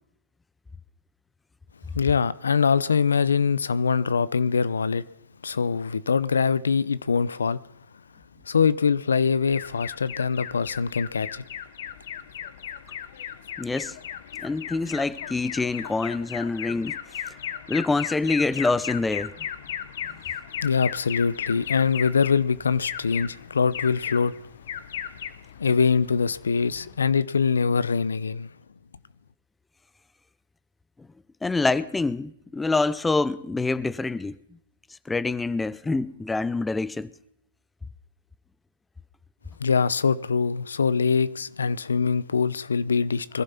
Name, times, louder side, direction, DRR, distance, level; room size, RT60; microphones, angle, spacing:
voice 1, 1.9-5.0 5.4-7.6 8.4-11.4 20.6-24.3 25.6-28.5 39.6-43.4, left 5 dB, 85° left, 0.6 m, -23 dB
Alarm, 9.5-27.1, left 9 dB, 60° left, 1.1 m, -37 dB
voice 2, 13.6-14.0 14.4-17.0 17.7-19.3 31.4-34.4 35.1-37.1, left 3 dB, 10° left, 0.5 m, -26 dB
21.0 x 11.5 x 5.8 m
hypercardioid pair, 125°, 0 cm